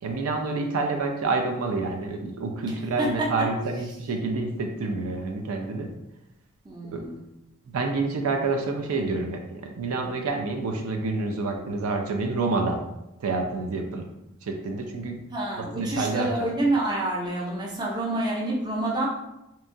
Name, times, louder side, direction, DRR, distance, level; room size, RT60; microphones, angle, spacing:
voice 1, 0.0-5.9 6.9-7.0 7.7-12.9 13.2-14.1 14.4-15.2 15.6-16.3, right 3 dB, 80° right, 3 dB, 0.4 m, -28 dB
voice 2, 2.7-3.3 6.6-7.2 15.3-19.1, right 1 dB, 20° right, -4 dB, 0.5 m, -28 dB
2.8 x 2.3 x 2.6 m, 0.88 s
head